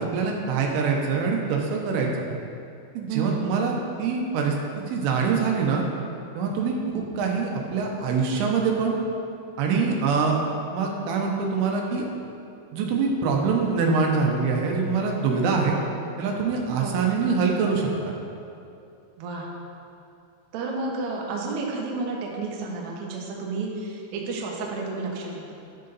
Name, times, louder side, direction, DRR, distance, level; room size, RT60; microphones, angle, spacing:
voice 1, 0.0-2.2 2.9-3.7 4.0-5.8 6.4-9.0 9.6-10.4 10.7-12.0 12.7-15.7 16.2-18.1, right 5 dB, 90° right, 0 dB, 3.4 m, -24 dB
voice 2, 3.1-3.7 15.4-15.9 16.8-17.0 19.2-19.5 20.5-25.6, right 3 dB, 70° right, -2 dB, 3.0 m, -31 dB
11.5 x 6.5 x 4.0 m, 2.6 s
omnidirectional pair, 5.4 m